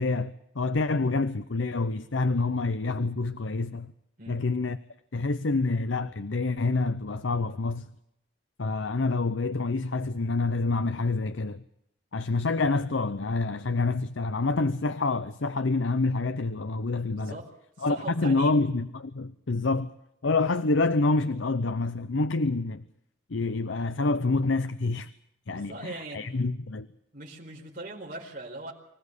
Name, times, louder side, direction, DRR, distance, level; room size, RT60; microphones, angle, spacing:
voice 1, 0.0-3.9 4.3-4.8 5.1-7.9 8.6-11.6 12.1-17.4 17.8-19.9 20.2-22.8 23.3-25.1 25.5-26.9, left 3 dB, 80° left, 0.7 m, -27 dB
voice 2, 17.1-18.6 25.5-26.3 27.1-28.7, right 2 dB, 45° right, 4.6 m, -41 dB
25.0 x 16.0 x 8.3 m
head